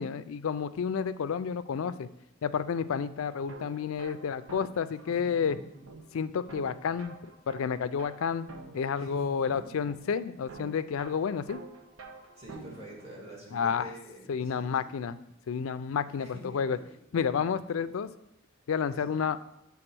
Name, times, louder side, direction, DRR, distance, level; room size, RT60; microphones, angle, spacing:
voice 1, 0.0-2.1 2.4-5.6 6.1-7.2 7.5-8.5 8.7-11.6 13.5-13.9 14.3-15.2 15.5-16.8 17.1-18.1 18.7-19.4, left 6 dB, 80° left, 13 dB, 0.4 m, -30 dB
sound 1, 3.3-13.2, right 3 dB, 75° right, 0.7 m, -49 dB
voice 2, 5.1-5.5 5.7-5.8 8.9-9.7 12.4-14.8 16.2-16.6 19.1-19.3, right 1 dB, 30° right, -5 dB, 1.9 m, -47 dB
7.8 x 3.5 x 6.0 m, 0.82 s
head